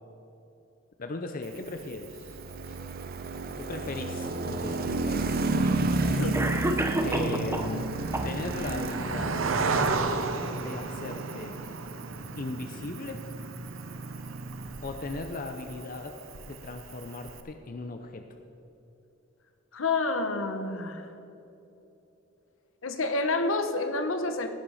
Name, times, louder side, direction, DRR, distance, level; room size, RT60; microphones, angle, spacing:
voice 1, 1.0-2.4 2.6-2.8 3.6-5.9 7.0-7.9 8.2-9.4 10.5-11.6 12.4-13.2 14.8-16.2 16.5-18.3, left 2 dB, 45° left, 6 dB, 0.6 m, -37 dB
Cricket, 1.4-17.4, right 4 dB, 80° right, 0.8 m, -36 dB
sound 1, 2.1-15.3, right 2 dB, 50° right, 0.6 m, -32 dB
voice 2, 6.0-6.4 19.7-21.1 22.8-24.5, left 3 dB, 75° left, 8 dB, 0.9 m, -29 dB
Cough, 6.3-7.8 8.1-8.8, right 1 dB, 15° right, 0.7 m, -30 dB
17.0 x 5.9 x 5.6 m, 3.0 s
head